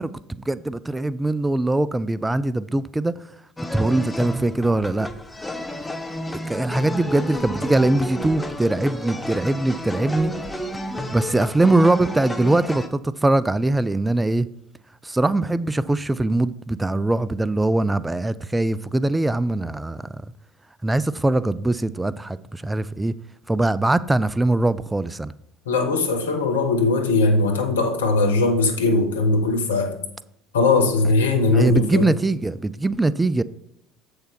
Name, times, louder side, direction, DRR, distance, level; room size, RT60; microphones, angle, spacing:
voice 1, 0.0-3.1 3.7-5.1 6.5-10.3 11.1-14.5 15.0-20.2 20.8-23.1 23.5-25.3 31.4-33.4, right 2 dB, 10° right, 0.4 m, -22 dB
sound 1, 3.6-12.9, equal, 10° left, 1.1 m, -31 dB
voice 2, 25.7-30.0 30.5-32.1, left 3 dB, 80° left, 1.3 m, -20 dB
8.1 x 6.5 x 4.5 m
hypercardioid pair, 65°, 0 cm